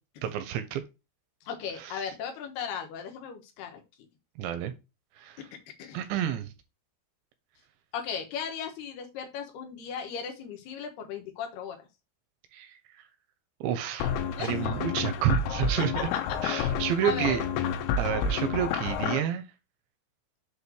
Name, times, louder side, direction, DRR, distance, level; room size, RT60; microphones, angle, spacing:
voice 1, 0.2-0.8 1.8-2.1 4.4-4.7 5.2-5.4 5.9-6.5 12.5-13.0 13.6-14.1 14.4-16.1 16.4-17.4 18.0-19.4, right 10 dB, 85° right, 2.6 m, -30 dB
voice 2, 1.5-3.8 5.8-6.1 7.9-11.8 14.3-14.5 15.9-16.0 17.0-17.4, left 7 dB, 70° left, 2.6 m, -36 dB
sound 1, 14.0-19.2, left 6 dB, 85° left, 3.5 m, -29 dB
8.2 x 2.8 x 6.1 m
omnidirectional pair, 5.7 m